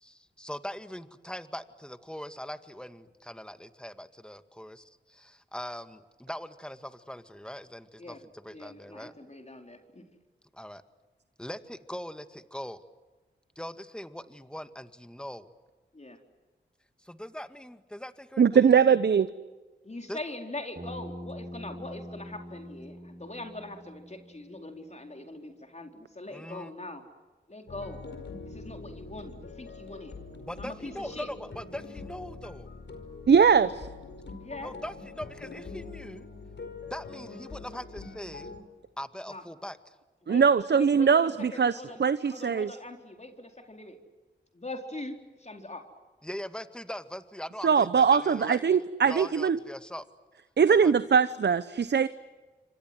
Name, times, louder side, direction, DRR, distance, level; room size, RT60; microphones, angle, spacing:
voice 1, 0.0-9.1 10.5-10.8 11.4-12.8 13.6-15.5 17.0-19.0 20.1-20.2 26.3-26.7 30.4-32.7 34.6-36.3 36.8-38.5 39.0-39.9 46.2-48.6 49.1-50.1 50.7-51.0, equal, 5° left, 10 dB, 2.1 m, -41 dB
voice 2, 8.5-10.0 15.9-16.2 19.8-27.0 27.5-28.0 28.5-30.1 30.6-31.3 34.4-34.7 39.3-39.4 40.2-42.0 42.3-44.0 44.5-45.8 47.6-47.8 48.6-49.2, left 2 dB, 35° left, 4 dB, 4.3 m, -42 dB
voice 3, 18.4-19.3 33.3-33.9 40.3-42.7 47.6-49.6 50.6-52.1, right 6 dB, 65° right, 14 dB, 0.9 m, -21 dB
Bass guitar, 20.8-25.1, equal, 35° right, 5.8 m, -44 dB
sound 1, 27.7-38.6, left 4 dB, 70° left, 5.0 m, -44 dB
28.0 x 25.5 x 8.0 m, 1.3 s
cardioid pair, 40°, 19 cm